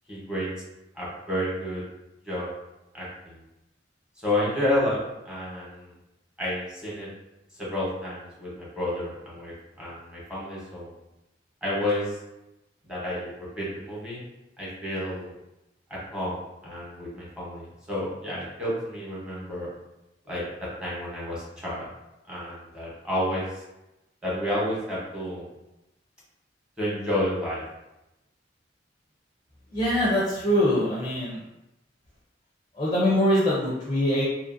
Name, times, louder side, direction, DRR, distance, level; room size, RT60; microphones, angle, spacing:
voice 1, 0.1-0.5 0.9-1.8 2.2-2.5 2.9-3.4 4.2-5.0 5.2-5.9 6.4-7.1 7.6-10.9 11.6-12.2 12.8-14.2 14.6-15.3 15.9-19.7 20.3-21.9 22.3-23.6 24.2-25.5 26.8-27.6, left 1 dB, 5° right, -8 dB, 0.9 m, -30 dB
voice 2, 29.7-31.4 32.8-34.2, equal, 25° left, -6 dB, 0.5 m, -23 dB
2.8 x 2.5 x 2.5 m, 0.94 s
head